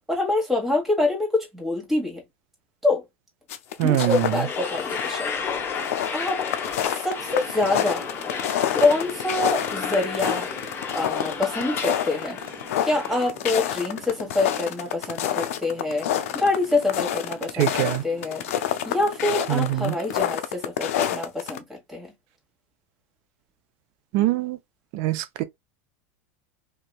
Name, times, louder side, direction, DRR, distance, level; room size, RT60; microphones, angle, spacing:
voice 1, 0.1-2.2 2.8-3.0 3.8-5.3 6.1-6.4 6.9-8.0 8.8-10.5 10.9-12.4 12.8-16.1 16.3-18.4 18.8-22.1, left 2 dB, ahead, 1.3 m, -25 dB
sound 1, 3.5-4.4 4.8-5.4 5.7-21.6, left 11 dB, 80° left, 0.4 m, -28 dB
sound 2, 3.8-13.3, left 6 dB, 30° left, 0.8 m, -32 dB
voice 2, 3.8-4.5 17.5-18.0 19.5-19.9 24.1-24.6 24.9-25.4, right 14 dB, 55° right, 0.5 m, -23 dB
sound 3, 7.2-20.2, right 3 dB, 20° right, 1.1 m, -46 dB
2.7 x 2.3 x 2.3 m
supercardioid pair, 110°, 7 cm